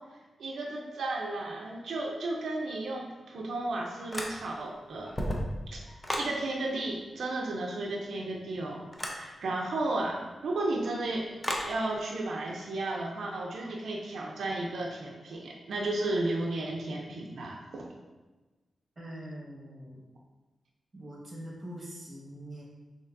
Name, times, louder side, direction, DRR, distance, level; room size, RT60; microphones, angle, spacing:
voice 1, 0.4-5.1 5.7-5.8 6.2-11.4 11.6-17.9, right 2 dB, 90° right, -1 dB, 0.5 m, -33 dB
sound 1, 4.1-4.7 5.0-6.4 8.9-9.2 11.4-11.7, equal, 15° left, 0.6 m, -33 dB
voice 2, 19.0-20.1 20.9-22.6, right 1 dB, 30° right, -4 dB, 1.4 m, -43 dB
6.5 x 2.9 x 2.6 m, 1.2 s
wide cardioid pair, 135°, 0 cm